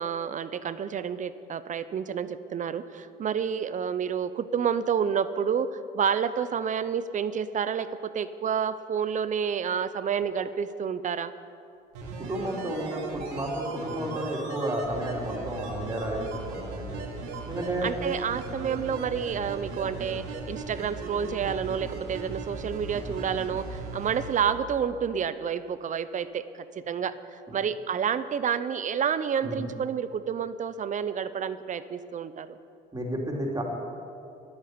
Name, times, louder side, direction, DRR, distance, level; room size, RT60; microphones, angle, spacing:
voice 1, 0.0-11.3 17.8-32.6, right 7 dB, 40° right, 13 dB, 0.7 m, -29 dB
sound 1, 11.9-24.5 24.8-24.9, right 3 dB, 90° right, 2.4 m, -37 dB
voice 2, 12.2-17.0 17.4-17.9 29.4-29.6 32.9-33.6, right 1 dB, 20° right, -1 dB, 3.0 m, -32 dB
10.5 x 8.6 x 9.7 m, 2.5 s
supercardioid pair, 85°, 19 cm